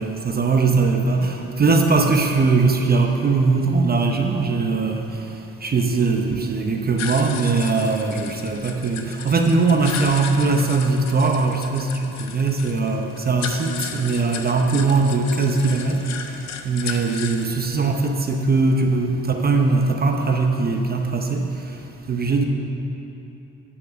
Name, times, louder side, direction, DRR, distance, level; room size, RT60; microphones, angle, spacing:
voice 1, 0.0-5.1 5.6-16.0 16.6-21.5 22.1-22.4, right 3 dB, 30° right, 3 dB, 0.7 m, -20 dB
sound 1, 7.0-17.4, left 7 dB, 60° left, 0.7 m, -35 dB
10.0 x 4.5 x 7.3 m, 3.0 s
cardioid pair, 90°, 30 cm